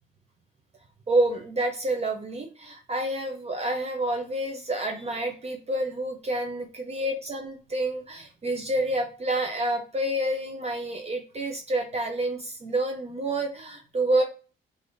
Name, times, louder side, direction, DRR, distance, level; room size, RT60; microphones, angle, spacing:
voice 1, 1.1-14.2, right 1 dB, 30° right, 3 dB, 0.5 m, -28 dB
3.3 x 2.6 x 2.4 m, 0.36 s
cardioid pair, 90°, 20 cm